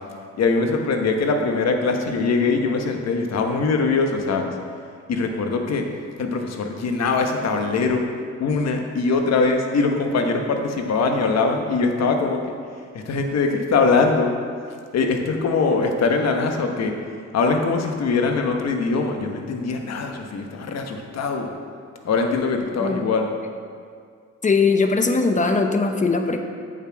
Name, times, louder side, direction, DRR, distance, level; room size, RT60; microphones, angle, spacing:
voice 1, 0.3-4.5 5.1-5.8 6.2-8.1 8.4-12.6 12.9-14.3 14.9-16.9 17.3-21.5 22.0-23.3, left 4 dB, 60° left, 4 dB, 1.1 m, -22 dB
voice 2, 24.4-26.4, left 4 dB, 25° left, 5 dB, 0.8 m, -20 dB
8.1 x 7.4 x 4.7 m, 2.1 s
cardioid pair, 90°, 30 cm